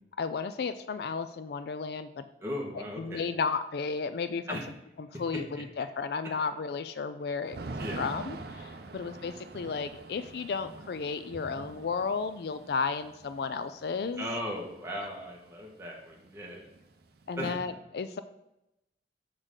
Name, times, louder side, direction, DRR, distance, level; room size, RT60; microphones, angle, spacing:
voice 1, 0.2-2.2 2.7-4.6 5.0-5.4 5.8-7.6 8.0-14.2 17.3-18.2, left 5 dB, 60° left, 11 dB, 0.4 m, -33 dB
voice 2, 2.4-3.2 4.5-4.7 5.3-5.6 7.7-8.0 8.8-9.2 14.2-16.6 17.4-17.6, equal, 15° right, -2 dB, 1.4 m, -37 dB
Thunder / Rain, 7.5-15.4 15.6-15.7 16.0-17.4, right 3 dB, 60° right, 0.6 m, -45 dB
6.4 x 6.3 x 3.7 m, 0.87 s
head